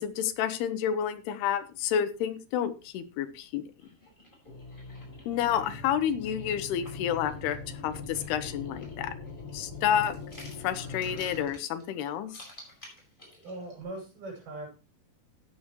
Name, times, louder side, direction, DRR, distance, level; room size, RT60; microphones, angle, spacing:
voice 1, 0.0-3.6 5.3-7.6 7.8-9.1 9.5-10.2 10.6-12.4, left 9 dB, 85° left, 10 dB, 3.0 m, -29 dB
sound 1, 3.8-13.8, left 1 dB, 10° left, 5.4 m, -53 dB
sound 2, 4.5-11.5, left 4 dB, 50° left, 1.8 m, -42 dB
voice 2, 13.4-14.7, right 2 dB, 70° right, -2 dB, 8.1 m, -40 dB
14.0 x 9.7 x 3.1 m, 0.31 s
omnidirectional pair, 4.5 m